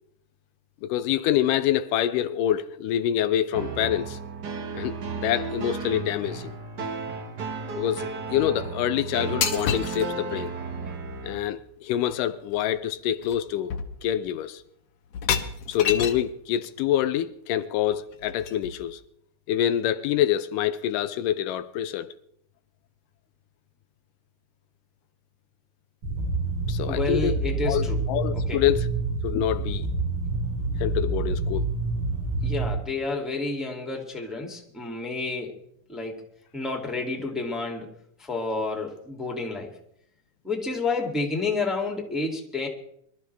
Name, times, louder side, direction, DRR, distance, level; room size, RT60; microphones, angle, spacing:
voice 1, 0.8-4.2 4.7-6.5 7.8-10.5 11.2-13.7 14.0-14.6 15.7-19.0 19.5-22.1 26.7-27.4 27.7-28.9 29.2-29.9 30.8-31.7, left 11 dB, 85° left, 2.3 m, -26 dB
sound 1, 3.5-11.4, right 4 dB, 45° right, 1.5 m, -34 dB
sound 2, 9.4-10.1 12.1-12.2 12.5-12.8 13.2-13.4 13.7-14.3 15.1-16.3 17.9-18.9, left 8 dB, 60° left, 2.1 m, -29 dB
sound 3, 26.0-32.7, right 2 dB, 75° right, 6.2 m, -27 dB
voice 2, 26.9-28.0 28.5-28.6 32.4-35.5 35.9-36.2 36.5-37.9 38.3-39.7 40.4-42.7, left 3 dB, ahead, 1.9 m, -30 dB
24.5 x 13.0 x 3.4 m
omnidirectional pair, 3.8 m